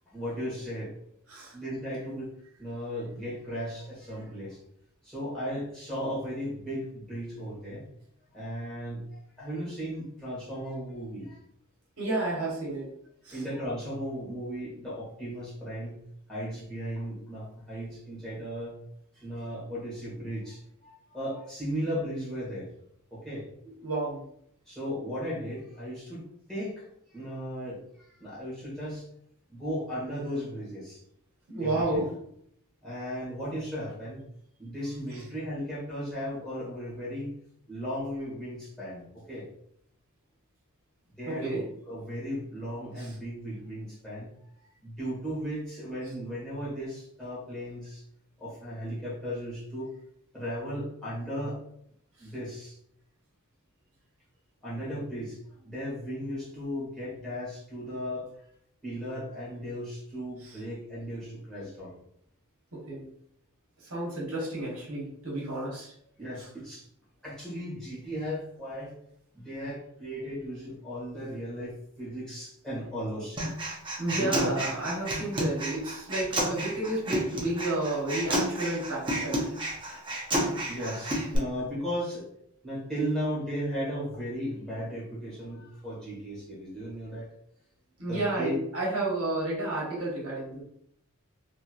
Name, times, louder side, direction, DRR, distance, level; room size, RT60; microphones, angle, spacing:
voice 1, 0.1-0.9 1.5-2.3 2.6-4.6 5.0-7.9 8.3-11.4 13.3-16.0 16.3-18.8 19.1-22.7 23.1-23.5 24.7-26.9 27.1-27.8 28.1-29.1 29.5-31.0 31.6-32.0 32.8-34.2 34.6-37.3 37.7-39.4 41.2-44.3 44.8-48.0 48.4-49.9 50.3-51.6 52.2-52.8 54.6-58.3 58.8-62.0 66.2-66.8 67.2-68.9 69.3-73.5 74.2-74.6 80.7-82.3 82.6-87.3 88.1-88.6, equal, 5° left, -9 dB, 1.3 m, -36 dB
voice 2, 12.0-12.9 13.2-13.4 23.8-24.2 31.5-32.1 35.1-35.2 41.3-41.6 43.0-43.1 60.4-60.5 62.7-63.1 63.8-65.9 74.0-79.4 88.0-90.6, right 2 dB, 75° right, -4 dB, 1.1 m, -31 dB
Human voice, 73.4-81.4, right 1 dB, 20° right, 0.6 m, -31 dB
3.1 x 2.7 x 2.4 m, 0.70 s
head